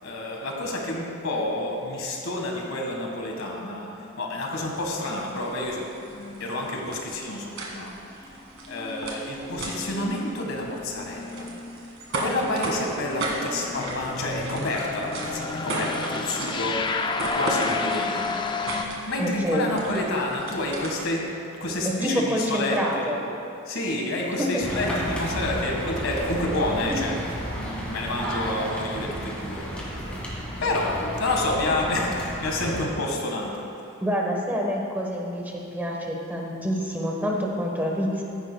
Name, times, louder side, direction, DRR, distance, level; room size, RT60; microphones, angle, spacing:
voice 1, 0.0-5.9 6.4-7.9 8.7-11.5 12.1-16.8 17.3-18.3 19.1-21.2 21.6-23.2 23.7-27.2 27.5-30.0 30.6-33.6, left 1 dB, 90° left, -1 dB, 1.6 m, -29 dB
sound 1, 3.2-4.4 6.1-7.1 7.4-7.5 8.1-18.9, left 4 dB, 25° left, 0.4 m, -33 dB
sound 2, 4.8-21.3, right 2 dB, 70° right, 1.7 m, -36 dB
voice 2, 19.2-19.7 21.8-23.2 24.4-24.8 26.9-27.0 34.0-38.2, equal, 10° right, -1 dB, 1.2 m, -27 dB
sound 3, 24.6-32.9, equal, 5° left, 2.0 m, -32 dB
15.0 x 10.5 x 2.3 m, 2.7 s
head